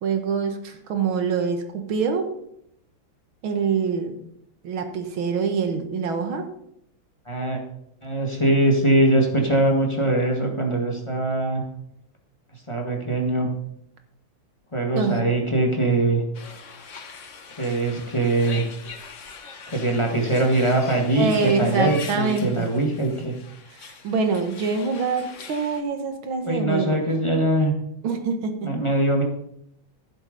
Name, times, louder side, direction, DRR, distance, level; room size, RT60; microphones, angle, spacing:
voice 1, 0.0-2.3 3.4-4.2 4.6-6.5 14.9-15.2 21.2-22.8 23.7-27.0 28.0-28.7, right 5 dB, 80° right, 6 dB, 2.1 m, -25 dB
voice 2, 7.2-7.6 8.0-11.6 12.7-13.5 14.7-16.2 17.6-18.7 19.7-23.3 26.4-27.7 28.6-29.2, right 1 dB, 15° left, 1 dB, 1.8 m, -22 dB
sound 1, 16.3-25.8, left 5 dB, 45° left, 1.2 m, -41 dB
14.0 x 7.6 x 5.3 m, 0.75 s
omnidirectional pair, 2.2 m